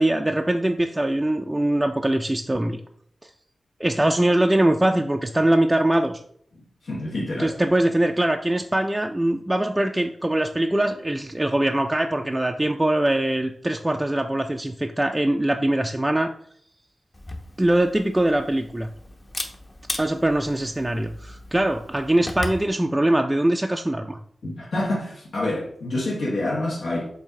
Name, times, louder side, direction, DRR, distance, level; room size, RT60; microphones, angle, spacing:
voice 1, 0.0-2.8 3.8-6.2 7.4-16.3 17.6-18.9 20.0-24.2, right 1 dB, 15° right, 0.4 m, -22 dB
voice 2, 6.5-7.5 24.4-27.1, left 1 dB, 80° left, 1.6 m, -27 dB
Camera, 17.1-22.7, left 1 dB, 30° left, 0.9 m, -37 dB
7.3 x 2.7 x 4.8 m
wide cardioid pair, 95°, 0 cm